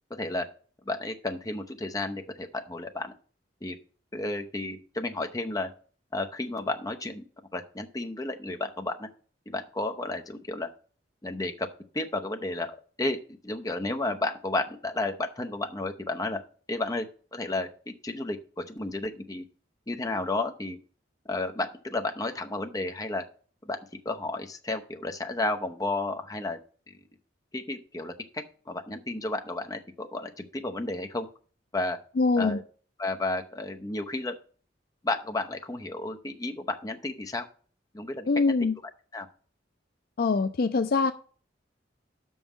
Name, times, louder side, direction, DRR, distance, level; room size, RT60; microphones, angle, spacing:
voice 1, 0.1-0.5 0.9-3.1 3.6-3.8 4.1-5.7 6.1-7.2 7.5-9.1 9.5-10.7 11.2-11.7 11.9-13.2 13.4-16.4 16.7-17.1 17.3-19.4 19.9-20.8 21.3-23.2 23.6-23.8 24.0-26.6 26.9-27.1 27.5-31.3 31.7-32.0 32.4-32.6 33.0-34.3 35.0-37.5 37.9-38.7 39.1-39.3, left 2 dB, 20° left, 0.7 m, -32 dB
voice 2, 32.2-32.6 38.3-38.7 40.2-41.1, left 4 dB, 55° left, 0.4 m, -23 dB
6.1 x 5.5 x 7.1 m
head